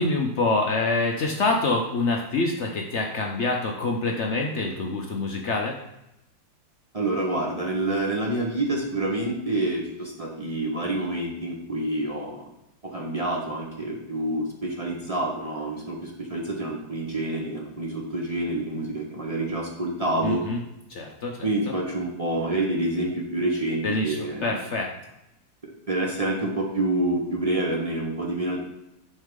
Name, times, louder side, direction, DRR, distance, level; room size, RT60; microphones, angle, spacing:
voice 1, 0.0-5.8 20.2-20.6 20.9-21.7 23.8-24.9, left 3 dB, 75° left, 1 dB, 0.6 m, -26 dB
voice 2, 6.9-12.4 12.8-20.4 21.4-24.5 25.6-28.6, right 1 dB, 40° right, -1 dB, 0.5 m, -27 dB
6.5 x 5.5 x 3.6 m, 0.86 s
omnidirectional pair, 2.0 m